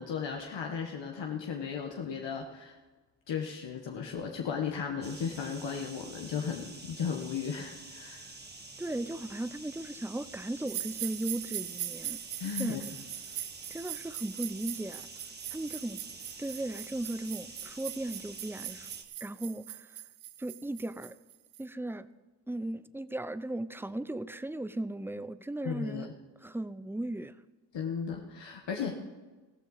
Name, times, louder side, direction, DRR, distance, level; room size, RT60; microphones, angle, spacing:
voice 1, 0.0-2.8 3.3-8.3 12.4-12.8 25.6-26.1 27.7-29.0, left 6 dB, 75° left, 2 dB, 1.3 m, -35 dB
sound 1, 5.0-19.0, right 2 dB, 20° right, 1.9 m, -48 dB
voice 2, 8.8-12.8 13.7-15.1 15.5-16.0 16.4-18.9 19.2-20.0 20.4-21.2 21.6-22.1 22.5-26.1 26.4-27.4, right 1 dB, 5° right, 15 dB, 0.5 m, -37 dB
sound 2, 10.7-21.6, right 14 dB, 90° right, 0.6 m, -41 dB
15.0 x 14.0 x 4.1 m, 1.2 s
cardioid pair, 70°, 44 cm